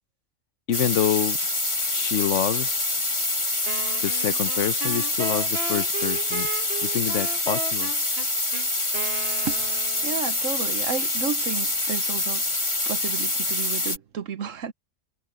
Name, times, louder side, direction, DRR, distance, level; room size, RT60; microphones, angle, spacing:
voice 1, 0.7-1.4 1.9-2.9 4.0-6.5 6.8-7.9, left 10 dB, 70° left, 1.1 m, -27 dB
sound 1, 0.7-14.0, left 2 dB, 25° left, 1.9 m, -26 dB
Wind instrument woodwind instrument, 3.7-10.2, right 6 dB, 50° right, 1.4 m, -35 dB
voice 2, 10.0-12.4 12.9-14.7, right 6 dB, 85° right, 1.4 m, -32 dB
omnidirectional pair, 1.3 m